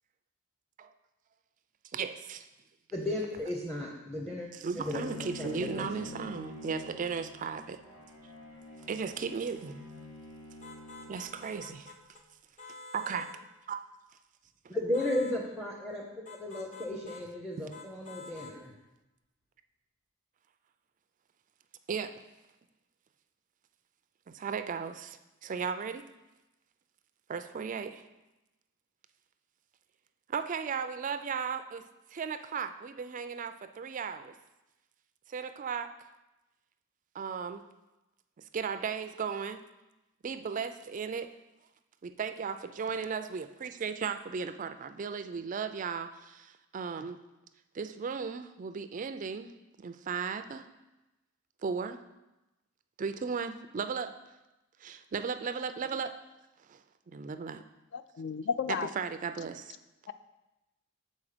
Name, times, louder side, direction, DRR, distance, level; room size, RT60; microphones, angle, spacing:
voice 1, 1.9-2.5 4.5-7.8 8.9-9.8 11.1-11.9 12.9-13.3 13.7-13.8 17.6-17.7 21.9-22.1 24.3-26.0 27.3-28.0 30.3-31.9 32.1-34.3 35.3-35.9 37.1-37.7 38.5-39.6 40.2-41.3 42.0-47.2 47.7-49.5 49.8-50.7 51.6-52.0 53.0-54.1 54.8-56.1 56.7-56.8 57.1-57.6 59.0-59.7, right 6 dB, 35° right, 0.3 m, -36 dB
voice 2, 2.9-4.5 4.8-5.0 5.4-5.9 14.7-18.7, left 1 dB, ahead, 0.6 m, -34 dB
Bowed string instrument, 4.8-11.8, left 2 dB, 85° left, 2.3 m, -46 dB
sound 1, 10.6-12.2 12.6-13.4 14.9-15.4 16.3-17.3 17.7-18.6, left 3 dB, 35° left, 0.8 m, -48 dB
voice 3, 57.9-58.9 60.1-60.2, left 6 dB, 55° left, 0.3 m, -33 dB
7.2 x 4.2 x 4.9 m
head